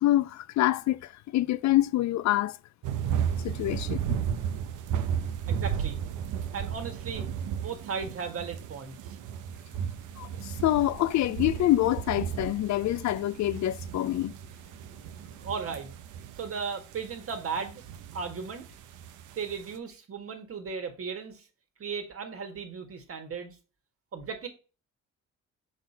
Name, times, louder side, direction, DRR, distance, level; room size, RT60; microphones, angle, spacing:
voice 1, 0.0-1.0 1.3-2.6 3.4-4.2 10.2-14.3, left 14 dB, 65° left, 0.5 m, -26 dB
sound 1, 2.8-19.8, right 8 dB, 85° right, 0.7 m, -34 dB
voice 2, 5.5-6.0 6.5-9.2 15.3-15.9 16.4-17.8 18.1-18.7 19.4-21.4 21.8-23.6 24.1-24.5, right 5 dB, 50° right, 1.8 m, -36 dB
6.0 x 4.2 x 4.3 m
cardioid pair, 90°, 30 cm